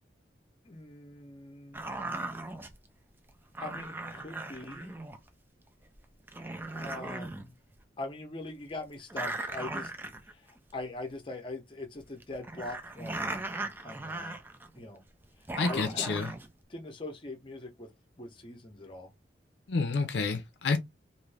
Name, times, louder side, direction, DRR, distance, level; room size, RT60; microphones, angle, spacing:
voice 1, 0.6-2.0 3.6-5.0 6.7-7.5 8.0-9.9 10.2-14.4 14.7-15.0 15.7-16.2 16.7-17.9 18.2-19.1, left 2 dB, 30° left, 0.7 m, -42 dB
sound 1, 1.7-2.8 3.5-5.3 5.9-6.0 6.3-7.5 7.7-7.8 9.1-10.5 10.8-10.9 12.0-14.9 15.2-16.5, right 2 dB, 10° right, 0.4 m, -38 dB
voice 2, 15.6-16.3 19.7-20.8, left 4 dB, 70° left, 0.5 m, -29 dB
2.6 x 2.5 x 3.3 m
head